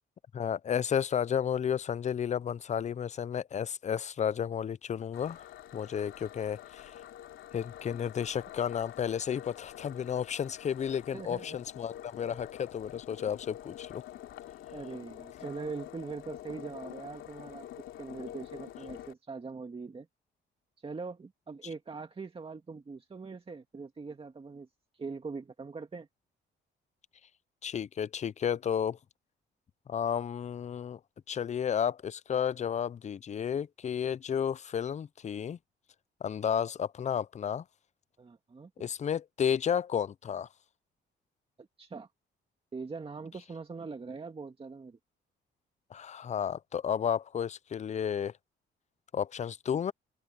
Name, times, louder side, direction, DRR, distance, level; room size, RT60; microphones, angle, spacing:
voice 1, 0.3-5.5 5.7-7.0 7.5-14.0 27.6-29.0 29.9-31.0 31.3-35.6 36.2-37.6 38.8-40.5 45.9-48.3 49.1-49.9, left 8 dB, 35° left, 0.5 m, -32 dB
sound 1, 5.1-19.1, left 12 dB, 80° left, 2.9 m, -47 dB
voice 2, 11.1-11.6 12.3-12.4 14.7-17.7 18.0-20.1 20.8-24.7 24.9-26.1 38.2-38.7 41.6-42.1 42.7-45.0, right 4 dB, 30° right, 1.9 m, -42 dB
open air
cardioid pair, 90°, 20 cm